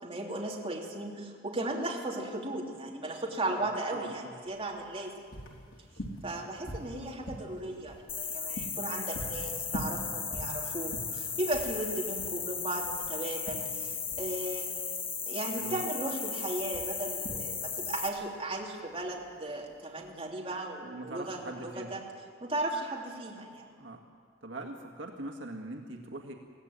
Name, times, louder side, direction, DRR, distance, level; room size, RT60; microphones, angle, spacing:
voice 1, 0.0-5.1 6.2-14.7 15.3-22.0 22.4-23.7, right 2 dB, 30° right, -2 dB, 3.2 m, -36 dB
voice 2, 3.9-4.3 15.6-16.0 20.8-21.9 23.8-24.0 24.4-26.3, right 2 dB, 70° right, 2 dB, 1.9 m, -42 dB
sound 1, 4.5-20.1, equal, 85° left, 3.5 m, -45 dB
sound 2, 8.1-18.1, left 6 dB, 30° left, 1.6 m, -36 dB
23.0 x 16.0 x 9.6 m, 2.1 s
head